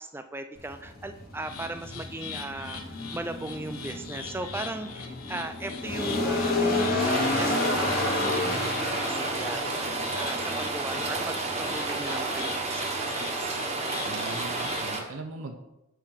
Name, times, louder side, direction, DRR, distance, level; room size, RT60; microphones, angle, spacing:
voice 1, 0.0-13.6, right 2 dB, 10° right, 8 dB, 0.3 m, -38 dB
sound 1, 0.6-15.0, left 2 dB, 40° left, 1.1 m, -32 dB
sound 2, 1.4-14.9, left 5 dB, 80° left, 1.0 m, -42 dB
Rain, 7.0-15.0, right 3 dB, 30° right, 0.9 m, -31 dB
voice 2, 14.0-15.6, right 3 dB, 65° right, 4 dB, 0.7 m, -40 dB
7.0 x 4.5 x 5.7 m, 0.93 s
head